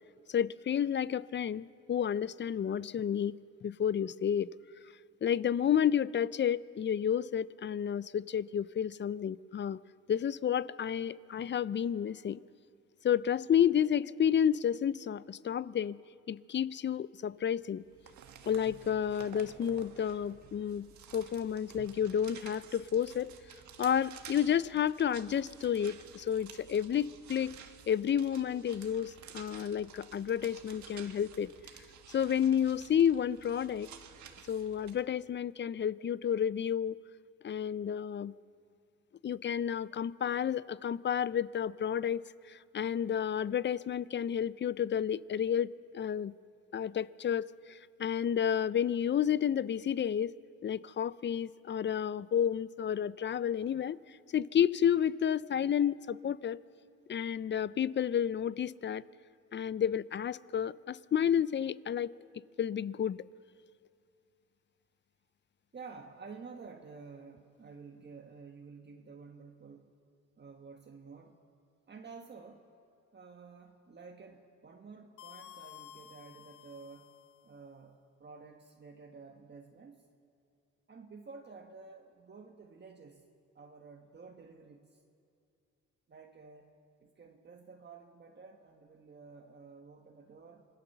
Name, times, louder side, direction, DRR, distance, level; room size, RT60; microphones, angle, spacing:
voice 1, 0.3-4.5 5.2-9.8 10.1-12.4 13.0-16.0 16.3-17.8 18.5-23.3 23.8-27.6 27.9-31.5 32.1-33.9 34.5-37.0 37.4-38.3 39.2-46.3 46.7-50.3 50.6-54.0 54.3-56.6 57.1-59.0 59.5-62.1 62.6-63.2, left 9 dB, 40° left, 18 dB, 0.5 m, -31 dB
sound 1, 17.7-35.0, right 8 dB, 70° right, 1.6 m, -53 dB
voice 2, 65.7-70.0 70.4-71.4 71.9-72.7 73.1-77.1 77.4-80.1 80.9-83.2 83.5-85.0 86.1-90.7, right 4 dB, 35° right, 3 dB, 1.5 m, -51 dB
sound 2, 75.2-77.5, left 10 dB, 80° left, 0.7 m, -53 dB
26.0 x 18.0 x 6.9 m, 2.5 s
cardioid pair, 90°, 30 cm